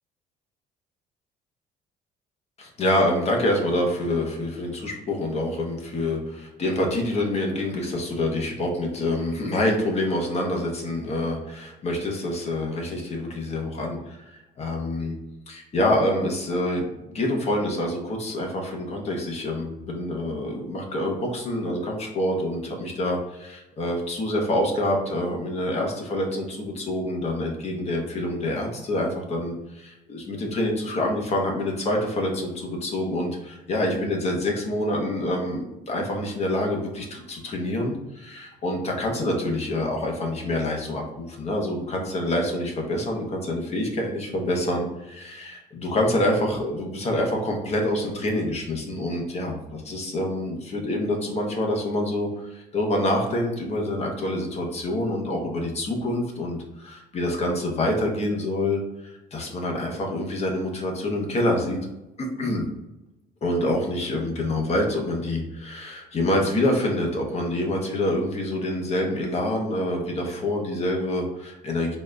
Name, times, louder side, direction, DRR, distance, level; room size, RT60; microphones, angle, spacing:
voice 1, 2.6-15.2 15.5-61.8 62.2-62.6 63.4-72.0, left 1 dB, 40° left, 1 dB, 1.1 m, -26 dB
4.1 x 2.5 x 3.3 m, 0.95 s
cardioid pair, 110°, 17 cm